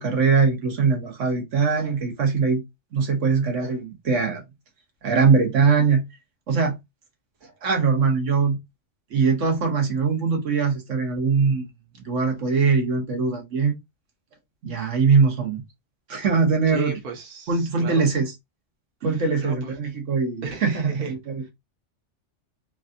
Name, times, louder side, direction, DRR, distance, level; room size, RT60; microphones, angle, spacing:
voice 1, 0.0-2.6 2.9-4.4 5.0-6.0 6.5-6.8 7.6-8.6 9.1-11.7 12.0-13.8 14.6-15.6 16.1-17.0 17.5-18.3 19.0-21.5, right 5 dB, 80° right, 1.3 m, -21 dB
voice 2, 16.7-18.1 19.0-19.8 20.4-21.1 21.4-21.5, right 4 dB, 55° right, 1.1 m, -37 dB
3.3 x 2.4 x 2.6 m
omnidirectional pair, 1.3 m